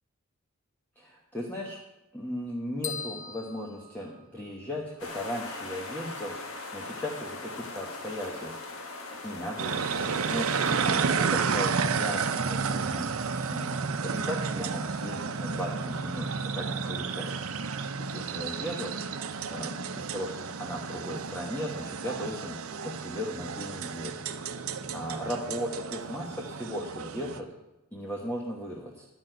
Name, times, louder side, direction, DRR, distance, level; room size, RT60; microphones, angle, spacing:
voice 1, 1.0-1.8 2.1-8.9 9.2-19.1 19.5-22.6 22.8-24.2 24.9-27.5 27.9-29.0, equal, 10° left, -2 dB, 1.2 m, -37 dB
sound 1, 2.8-4.8, left 6 dB, 35° left, 0.9 m, -40 dB
sound 2, 5.0-10.8, left 3 dB, 70° left, 1.6 m, -40 dB
sound 3, 9.6-27.4, right 5 dB, 75° right, 0.7 m, -31 dB
11.5 x 6.3 x 9.1 m, 0.94 s
head